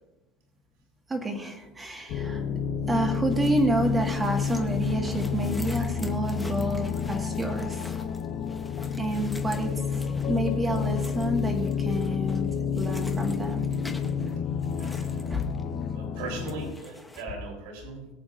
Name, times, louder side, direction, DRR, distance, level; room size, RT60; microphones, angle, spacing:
voice 1, 1.1-2.4 2.9-7.9 9.0-13.7 15.3-15.4, right 1 dB, 10° right, 2 dB, 1.7 m, -29 dB
sound 1, 2.1-16.7, left 6 dB, 40° left, 0.7 m, -30 dB
sound 2, 3.3-15.9 16.2-17.2, left 2 dB, 5° left, 0.8 m, -46 dB
voice 2, 14.8-15.4 15.9-18.1, right 3 dB, 75° right, 0 dB, 3.7 m, -39 dB
21.5 x 8.6 x 2.6 m, 1.0 s
cardioid pair, 175°, 0 cm